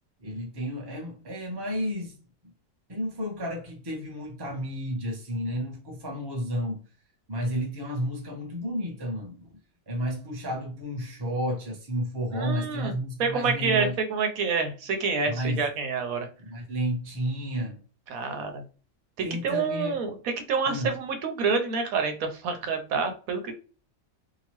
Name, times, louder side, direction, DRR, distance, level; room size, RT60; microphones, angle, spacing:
voice 1, 0.2-2.2 2.4-2.5 2.9-6.8 7.3-9.6 9.9-13.9 15.2-15.6 16.4-17.8 19.2-20.0 20.7-20.9, equal, 25° right, 0.6 m, -31 dB
voice 2, 12.3-12.9 13.2-16.3 18.1-18.6 19.2-23.5, right 5 dB, 90° right, 1.1 m, -28 dB
2.9 x 2.3 x 2.9 m
omnidirectional pair, 1.4 m